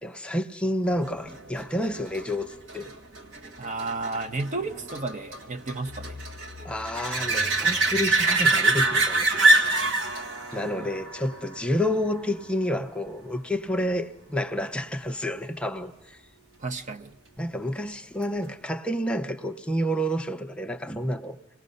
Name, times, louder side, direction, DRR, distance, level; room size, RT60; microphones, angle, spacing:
voice 1, 0.0-2.9 6.6-9.7 10.5-16.2 17.4-21.4, equal, 5° left, 0.6 m, -29 dB
sound 1, 1.3-12.6 18.2-18.3, right 2 dB, 80° right, 1.6 m, -26 dB
voice 2, 3.6-6.2 10.5-11.0 16.6-17.2, right 3 dB, 40° right, 0.6 m, -33 dB
26.5 x 19.0 x 5.3 m
head